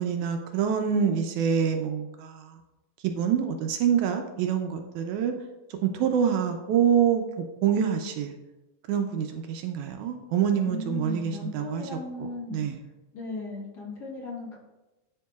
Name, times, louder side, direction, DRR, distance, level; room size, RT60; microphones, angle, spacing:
voice 1, 0.0-2.5 3.0-5.3 5.8-7.2 7.6-8.3 8.9-11.9 12.2-12.8, right 8 dB, 80° right, 5 dB, 1.9 m, -26 dB
voice 2, 10.6-12.6 13.1-14.5, left 3 dB, 45° left, -4 dB, 1.4 m, -36 dB
11.0 x 4.6 x 2.3 m, 1.0 s
omnidirectional pair, 3.6 m